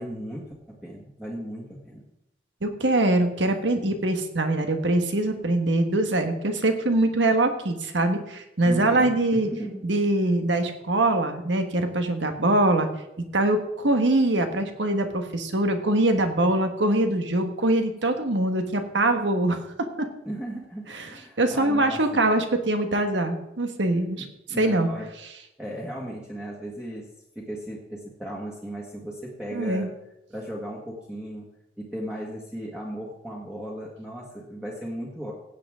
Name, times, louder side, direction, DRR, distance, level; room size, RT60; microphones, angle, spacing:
voice 1, 0.0-2.0 8.6-9.8 20.2-22.3 24.2-25.1 25.6-27.1 27.3-29.9 30.3-31.5 31.8-35.3, right 1 dB, 5° right, -4 dB, 1.6 m, -36 dB
voice 2, 2.6-9.5 9.8-12.9 13.3-19.6 20.0-20.1 20.9-21.1 21.4-24.2 24.6-24.9 29.5-29.9, right 2 dB, 85° right, 6 dB, 1.5 m, -23 dB
16.5 x 8.0 x 3.7 m, 0.87 s
head